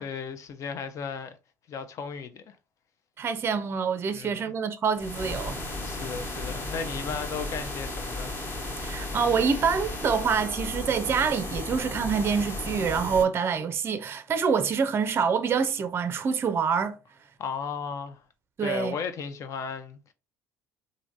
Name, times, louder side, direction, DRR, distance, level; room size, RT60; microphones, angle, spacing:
voice 1, 0.0-1.4 1.7-2.6 4.1-4.5 5.8-8.3 17.4-18.2 18.6-20.1, left 6 dB, 55° left, 0.6 m, -35 dB
voice 2, 3.2-5.6 8.8-17.0 18.6-19.0, right 6 dB, 35° right, 0.4 m, -26 dB
sound 1, 5.0-13.2, left 2 dB, 35° left, 1.2 m, -34 dB
3.1 x 2.6 x 2.5 m
supercardioid pair, 80°, 6 cm